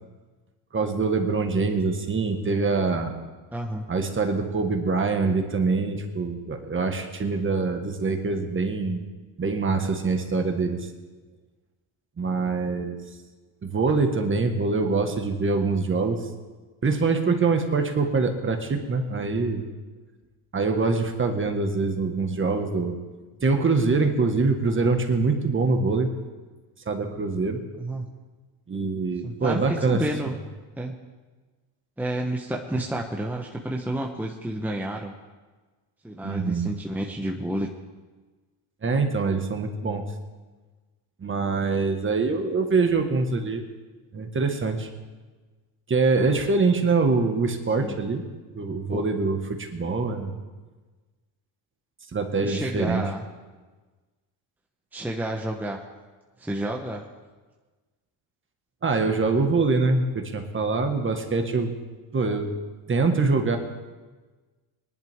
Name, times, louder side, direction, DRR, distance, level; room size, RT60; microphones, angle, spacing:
voice 1, 0.7-3.1 3.9-9.0 9.4-10.9 12.2-13.0 13.6-16.2 16.8-19.7 20.5-22.9 23.4-26.1 26.8-27.6 28.7-30.0 36.2-36.7 38.8-40.0 41.2-43.6 44.1-44.9 45.9-48.2 48.5-50.4 52.1-53.0 58.8-61.7 62.1-62.5 62.9-63.6, right 4 dB, 25° right, 5 dB, 1.6 m, -24 dB
voice 2, 3.5-3.8 27.8-28.1 29.2-30.3 30.8-31.0 32.0-35.1 36.0-37.7 47.8-48.0 48.9-49.0 52.4-53.2 54.9-55.8 56.4-57.1, right 1 dB, 5° right, 0 dB, 1.0 m, -30 dB
19.5 x 11.0 x 3.6 m, 1.3 s
cardioid pair, 105°, 44 cm